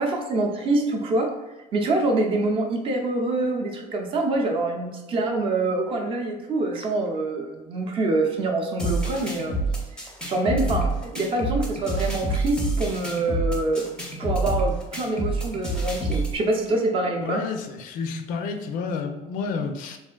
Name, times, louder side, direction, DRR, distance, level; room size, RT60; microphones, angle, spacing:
voice 1, 0.0-1.3 1.7-9.6 10.0-13.9 14.2-17.4, right 2 dB, 40° right, 2 dB, 0.5 m, -25 dB
sound 1, 8.8-16.4, right 2 dB, 5° left, 0.5 m, -27 dB
voice 2, 17.2-20.0, left 5 dB, 70° left, 6 dB, 0.4 m, -30 dB
3.4 x 2.4 x 2.2 m, 1.1 s
cardioid pair, 145°, 14 cm